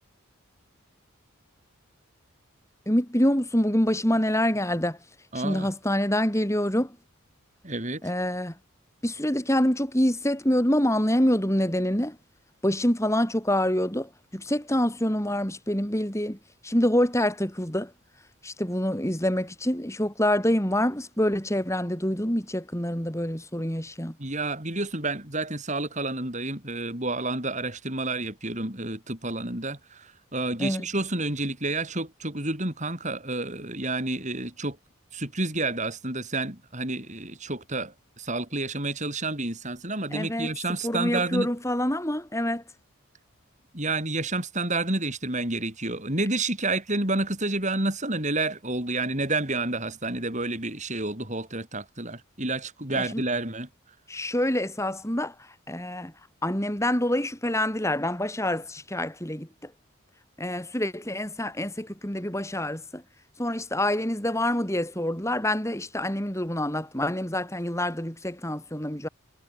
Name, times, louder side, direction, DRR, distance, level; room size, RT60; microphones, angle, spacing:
voice 1, 2.9-5.0 5.3-7.0 8.0-8.6 9.0-12.2 12.6-17.9 18.4-24.2 30.6-30.9 40.1-40.5 40.8-42.6 52.9-53.2 54.1-56.1 56.4-59.7 60.4-63.0 63.4-69.1, left 1 dB, 15° left, 4.8 m, -26 dB
voice 2, 5.3-5.7 7.6-8.0 24.2-34.8 35.1-41.5 43.7-53.7, right 2 dB, 35° right, 6.8 m, -29 dB
head